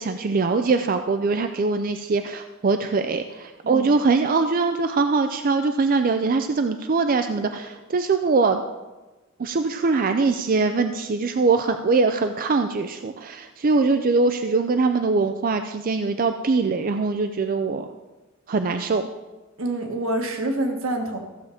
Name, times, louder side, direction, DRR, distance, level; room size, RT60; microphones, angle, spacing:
voice 1, 0.0-8.6 9.4-17.9 18.5-19.1, right 4 dB, 40° right, 8 dB, 0.4 m, -22 dB
voice 2, 19.6-21.2, right 1 dB, 65° right, 3 dB, 1.7 m, -27 dB
14.5 x 7.3 x 5.0 m, 1.1 s
head